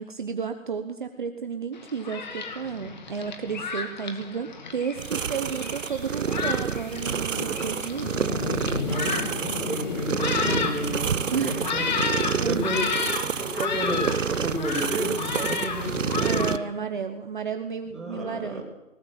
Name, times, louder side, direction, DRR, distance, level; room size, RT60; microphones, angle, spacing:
voice 1, 0.0-8.2 11.0-11.7 12.4-12.9 16.2-18.6, right 6 dB, 35° right, 8 dB, 1.1 m, -32 dB
Thunderstorm, 1.7-16.6, left 5 dB, 35° left, 2.4 m, -32 dB
sound 1, 5.0-16.6, right 7 dB, 65° right, 0.8 m, -29 dB
voice 2, 8.8-9.1 9.4-13.0 13.4-16.6 17.9-18.6, right 1 dB, ahead, -5 dB, 2.7 m, -32 dB
19.5 x 19.0 x 7.8 m, 0.89 s
figure-of-eight pair, 160°, 41 cm